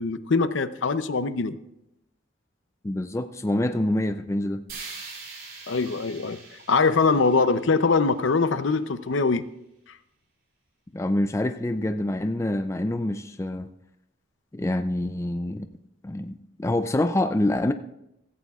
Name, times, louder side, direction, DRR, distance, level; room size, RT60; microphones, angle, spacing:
voice 1, 0.0-1.6 5.7-6.4 6.7-9.4, left 4 dB, 65° left, 12 dB, 0.6 m, -22 dB
voice 2, 2.8-4.6 10.9-13.7 14.5-15.7 16.0-17.7, left 1 dB, 15° left, 9 dB, 0.4 m, -26 dB
sound 1, 4.7-8.8, right 4 dB, 45° right, 3.1 m, -43 dB
16.0 x 15.5 x 2.4 m, 0.85 s
head